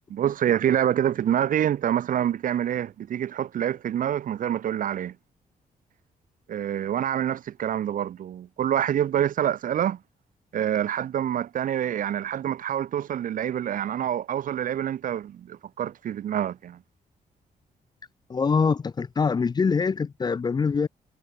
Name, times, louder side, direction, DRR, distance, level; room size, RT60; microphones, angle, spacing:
voice 1, 0.1-5.2 6.5-10.0 10.5-16.8, right 10 dB, 60° right, 0.9 m, -26 dB
voice 2, 18.3-20.9, left 5 dB, 25° left, 0.6 m, -24 dB
wide cardioid pair, 145°, 15 cm